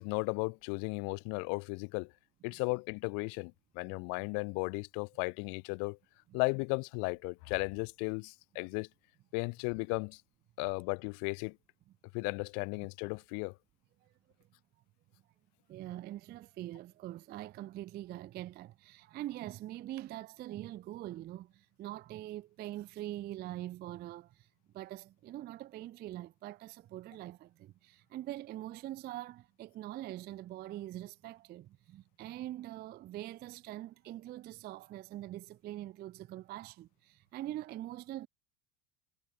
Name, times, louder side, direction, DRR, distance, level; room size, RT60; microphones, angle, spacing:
voice 1, 0.0-2.1 2.4-6.0 6.3-8.9 9.3-10.2 10.6-11.6 12.1-13.5, left 37 dB, 40° left, 0.4 m, -35 dB
voice 2, 15.7-24.3 24.7-38.3, right 14 dB, 20° right, 0.4 m, -43 dB
hypercardioid pair, 80°, 50 cm